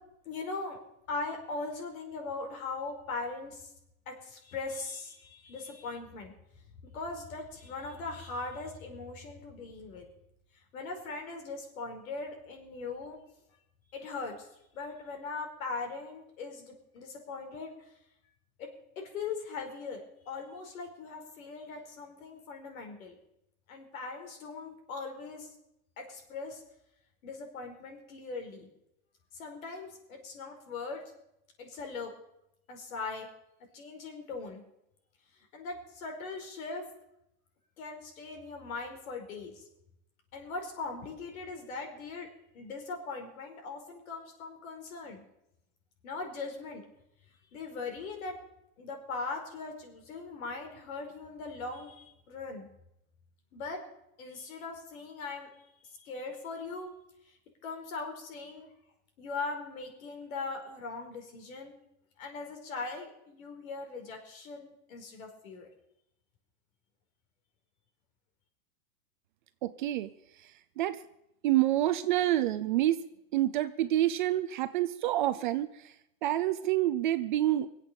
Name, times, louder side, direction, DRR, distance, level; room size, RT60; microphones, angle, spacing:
voice 1, 0.2-0.8 1.1-3.7 4.0-6.3 6.8-10.1 10.7-13.2 13.9-14.5 14.7-17.9 18.6-18.7 18.9-23.2 23.7-25.5 26.0-26.6 27.2-28.7 29.3-31.0 31.6-32.1 32.7-33.3 33.7-34.6 35.5-36.9 37.8-39.7 40.3-45.2 46.0-46.8 47.5-48.4 48.8-52.7 53.5-53.8 54.2-55.5 55.8-56.9 57.3-57.4 57.6-58.7 59.2-61.7 62.2-65.7, left 3 dB, 65° left, 3 dB, 5.1 m, -40 dB
voice 2, 69.6-70.1 70.8-71.0 71.4-73.0 73.3-75.7 76.2-77.7, right 14 dB, 35° right, 11 dB, 0.5 m, -27 dB
23.0 x 8.3 x 6.9 m, 0.81 s
supercardioid pair, 160°, 44 cm